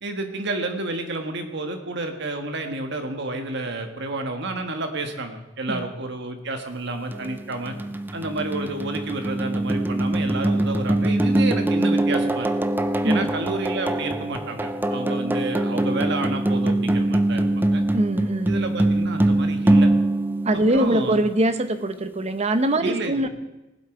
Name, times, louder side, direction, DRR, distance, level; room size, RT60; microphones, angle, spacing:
voice 1, 0.0-7.8 8.1-12.5 13.0-17.8 18.5-19.9 20.5-21.2 22.8-23.3, right 2 dB, 60° right, 5 dB, 1.5 m, -30 dB
sound 1, 7.1-21.3, right 1 dB, 10° right, 0.5 m, -23 dB
voice 2, 17.9-18.6 20.4-23.3, right 1 dB, 35° right, 10 dB, 0.8 m, -22 dB
19.0 x 7.9 x 4.9 m, 1.0 s
head